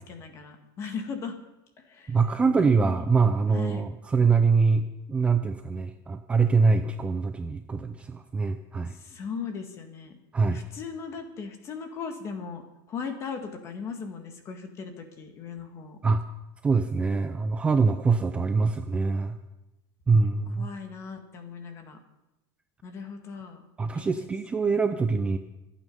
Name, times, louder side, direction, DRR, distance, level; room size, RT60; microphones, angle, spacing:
voice 1, 0.0-1.4 1.9-2.2 2.6-3.0 3.5-3.8 8.9-10.2 10.5-12.6 12.9-16.0 20.6-22.0 22.8-23.7 24.0-24.1, left 5 dB, 25° left, 6 dB, 1.7 m, -38 dB
voice 2, 2.1-9.0 10.3-10.6 16.0-16.2 16.6-19.4 20.1-20.7 23.8-25.4, right 4 dB, 10° right, 8 dB, 0.5 m, -24 dB
24.5 x 9.1 x 5.4 m, 0.97 s
supercardioid pair, 175°, 11 cm